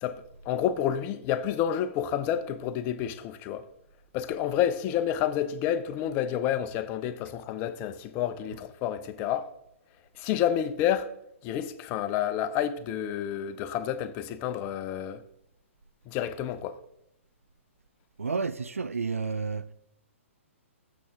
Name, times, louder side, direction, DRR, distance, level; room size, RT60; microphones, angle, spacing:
voice 1, 0.0-3.6 4.1-9.4 10.2-11.1 11.4-15.2 16.1-16.8, left 10 dB, 25° left, 0.5 m, -29 dB
voice 2, 18.2-19.6, right 4 dB, 75° right, 0.4 m, -30 dB
8.4 x 6.9 x 3.4 m
figure-of-eight pair, 120°, 7 cm